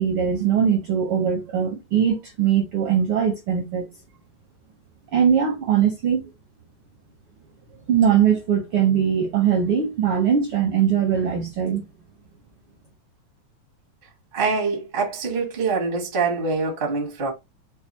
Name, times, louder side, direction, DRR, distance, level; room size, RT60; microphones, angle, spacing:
voice 1, 0.0-3.9 5.1-6.2 7.9-11.8, right 8 dB, 70° right, 1.3 m, -21 dB
voice 2, 14.3-17.3, right 4 dB, 45° right, 0.6 m, -24 dB
4.7 x 2.4 x 2.8 m
omnidirectional pair, 3.5 m